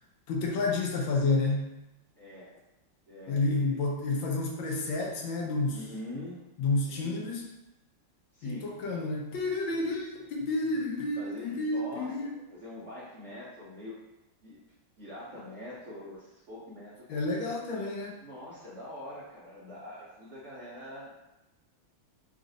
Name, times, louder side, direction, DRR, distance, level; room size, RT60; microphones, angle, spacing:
voice 1, 0.3-1.7 3.3-5.8 6.6-7.4 8.4-12.3 17.1-18.1, left 3 dB, 75° left, 0 dB, 1.3 m, -30 dB
voice 2, 2.2-2.5 3.1-3.6 5.7-6.4 6.8-7.2 8.3-8.7 11.2-14.0 14.4-14.6 15.0-17.2 18.2-21.1, left 1 dB, 70° right, -8 dB, 0.6 m, -44 dB
3.9 x 2.5 x 3.9 m, 0.99 s
omnidirectional pair, 2.4 m